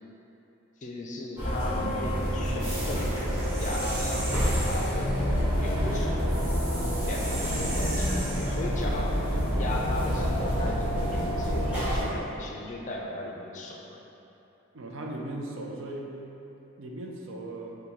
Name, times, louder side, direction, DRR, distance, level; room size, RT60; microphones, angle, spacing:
voice 1, 0.8-3.1 3.6-6.3 7.0-14.0, left 2 dB, 35° left, -1 dB, 0.4 m, -37 dB
sound 1, 1.4-12.0, equal, 10° right, 1.2 m, -28 dB
sound 2, 2.6-5.0 6.3-8.9, right 1 dB, 35° right, 1.0 m, -37 dB
voice 2, 14.7-16.1 16.8-17.8, right 1 dB, 65° right, 0 dB, 0.5 m, -37 dB
5.3 x 2.2 x 4.5 m, 3.0 s
head